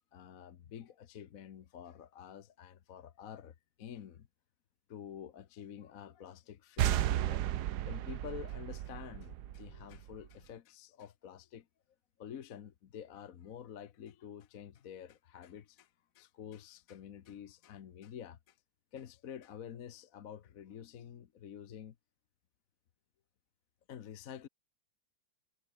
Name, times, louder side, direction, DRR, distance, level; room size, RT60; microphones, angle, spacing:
voice 1, 0.1-4.3 4.9-7.5 7.8-11.7 12.2-18.6 18.9-22.0 23.9-24.5, left 9 dB, 50° left, 1.2 m, -49 dB
sound 1, 6.8-10.3, right 12 dB, 65° right, 1.2 m, -34 dB
omnidirectional pair, 2.1 m